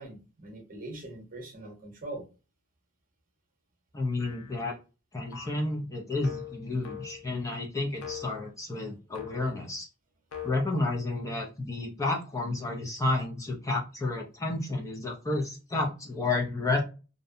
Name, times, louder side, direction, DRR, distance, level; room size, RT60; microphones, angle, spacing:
voice 1, 0.0-2.3, right 2 dB, 40° right, 2 dB, 0.9 m, -42 dB
voice 2, 3.9-4.8 5.1-9.9 10.4-16.8, left 2 dB, 15° left, -1 dB, 0.5 m, -31 dB
sound 1, 4.2-4.7 5.3-5.7 6.2-7.4 8.0-8.5 9.2-9.6 10.3-10.6, left 10 dB, 85° left, 0.5 m, -42 dB
2.6 x 2.1 x 2.5 m, 0.32 s
head